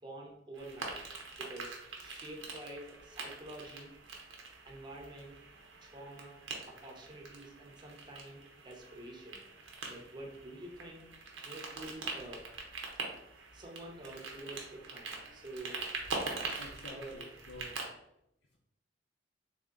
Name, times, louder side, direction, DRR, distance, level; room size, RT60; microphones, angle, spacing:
voice 1, 0.0-1.0 1.4-3.9 4.6-5.4 5.8-9.4 9.9-11.0 11.5-12.4 13.5-15.8 16.9-17.2, right 1 dB, 25° right, 0 dB, 0.7 m, -48 dB
sound 1, 0.5-17.8, right 3 dB, 90° right, 0.8 m, -44 dB
voice 2, 16.6-17.8, equal, 75° left, -2 dB, 0.6 m, -49 dB
3.4 x 2.8 x 3.7 m, 0.80 s
head